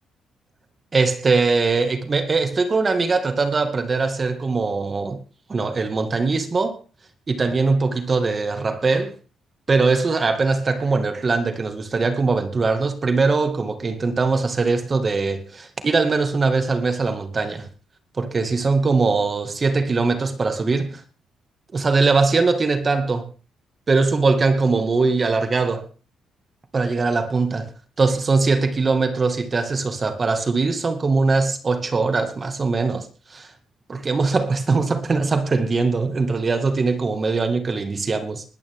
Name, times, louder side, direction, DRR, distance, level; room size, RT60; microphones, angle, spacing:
voice 1, 0.9-5.2 5.5-6.8 7.3-9.1 9.7-17.7 18.2-21.0 21.7-23.3 23.9-25.9 26.7-27.7 28.0-33.5 33.9-38.4, right 4 dB, 35° right, 2.1 m, -21 dB
20.5 x 10.5 x 3.8 m
cardioid pair, 90°, 0 cm